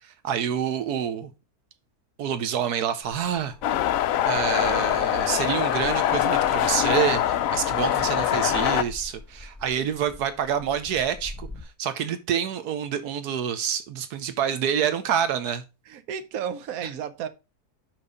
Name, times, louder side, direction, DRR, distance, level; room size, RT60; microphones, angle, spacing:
voice 1, 0.0-1.3 2.2-3.8 4.2-15.6, right 8 dB, 85° right, 1.3 m, -27 dB
sound 1, 3.0-11.6, left 2 dB, ahead, 1.0 m, -45 dB
sound 2, 3.6-8.8, left 11 dB, 70° left, 1.0 m, -23 dB
voice 2, 15.9-17.3, right 8 dB, 65° right, 1.3 m, -32 dB
6.2 x 5.7 x 5.0 m
omnidirectional pair, 1.6 m